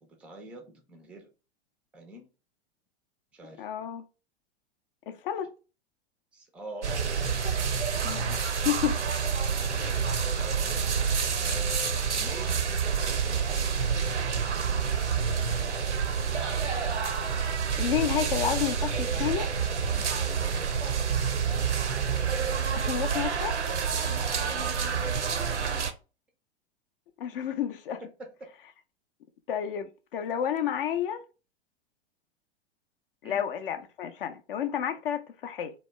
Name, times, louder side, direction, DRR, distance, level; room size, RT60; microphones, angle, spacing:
voice 1, 0.0-1.3 1.9-2.3 3.3-3.7 6.3-6.9 7.4-7.5 9.7-10.3 10.6-11.1 11.4-14.7 19.8-20.1 24.4-25.5 28.2-28.5 33.2-33.4, right 1 dB, 5° right, 0.3 m, -45 dB
voice 2, 3.6-4.1 5.1-5.5 8.0-8.4 8.6-9.0 17.8-19.5 22.7-23.6 27.2-28.0 29.5-31.2 33.2-35.7, left 9 dB, 55° left, 0.5 m, -30 dB
sound 1, 6.8-25.9, right 6 dB, 90° right, 0.5 m, -28 dB
2.7 x 2.1 x 3.2 m
figure-of-eight pair, 95°, 33 cm